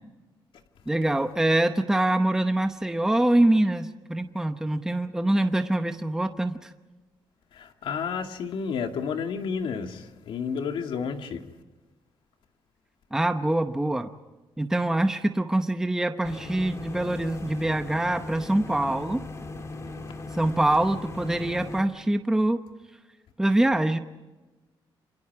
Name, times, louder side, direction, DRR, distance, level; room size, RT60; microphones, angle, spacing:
voice 1, 0.9-6.7 13.1-14.1 14.6-19.2 20.3-22.6 23.4-24.0, right 1 dB, 5° right, 0.9 m, -24 dB
voice 2, 7.5-11.4, left 6 dB, 75° left, 2.3 m, -31 dB
sound 1, 16.2-21.8, left 2 dB, 35° left, 3.4 m, -38 dB
28.5 x 26.5 x 4.8 m
cardioid pair, 155°, 9 cm